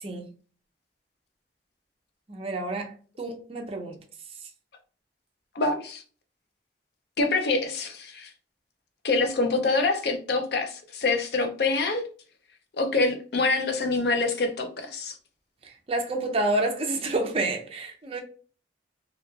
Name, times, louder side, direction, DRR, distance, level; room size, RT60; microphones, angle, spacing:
voice 1, 2.3-2.9 3.2-4.0 15.6-18.2, right 2 dB, 30° right, 0.5 m, -29 dB
voice 2, 5.5-6.0 7.2-8.3 9.0-12.0 12.8-15.2, left 3 dB, 60° left, 0.4 m, -25 dB
3.0 x 2.2 x 2.2 m
head